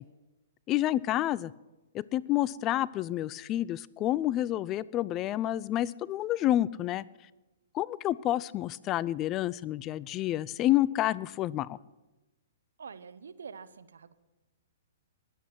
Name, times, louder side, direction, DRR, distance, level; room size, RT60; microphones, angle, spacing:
voice 1, 0.7-1.5 1.9-7.0 7.7-11.8, left 14 dB, 30° left, 0.4 m, -29 dB
voice 2, 12.8-14.1, right 6 dB, 75° right, 0.9 m, -46 dB
20.0 x 8.4 x 6.0 m
hypercardioid pair, 125°, 0 cm